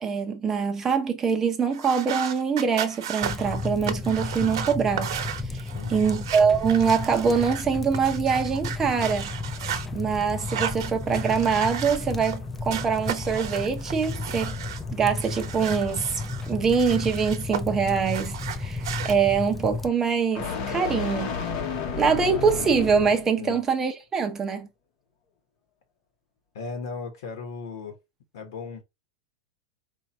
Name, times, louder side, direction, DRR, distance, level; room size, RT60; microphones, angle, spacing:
voice 1, 0.0-5.2 5.5-5.6 5.9-9.3 9.9-14.5 14.9-16.2 16.5-21.4 22.0-24.7, right 6 dB, 15° right, 0.8 m, -24 dB
sound 1, 1.7-9.9 10.4-12.4 12.7-14.8 15.2-17.6 17.9-19.1, right 9 dB, 65° right, 1.0 m, -34 dB
sound 2, 3.2-19.9, left 3 dB, 5° left, 0.3 m, -33 dB
voice 2, 5.7-6.1 23.4-23.6 26.5-27.9 28.3-28.8, left 4 dB, 70° left, 1.4 m, -36 dB
sound 3, 8.8-23.4, left 5 dB, 40° left, 1.1 m, -37 dB
4.5 x 2.7 x 4.3 m
supercardioid pair, 160°, 3 cm